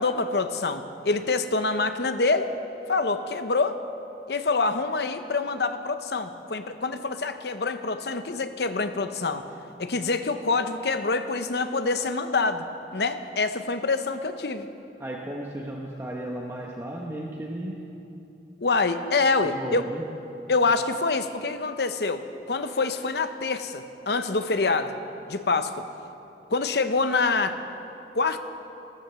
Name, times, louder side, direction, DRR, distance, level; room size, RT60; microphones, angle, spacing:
voice 1, 0.0-2.5 2.9-3.8 4.3-9.5 9.8-12.6 12.9-14.7 18.6-19.8 20.5-25.0 25.3-25.8 26.5-27.6 28.1-28.4, left 3 dB, 65° left, 9 dB, 0.8 m, -26 dB
voice 2, 15.0-17.8 19.4-20.0, right 1 dB, 15° right, -2 dB, 1.0 m, -34 dB
14.5 x 14.0 x 6.9 m, 2.9 s
head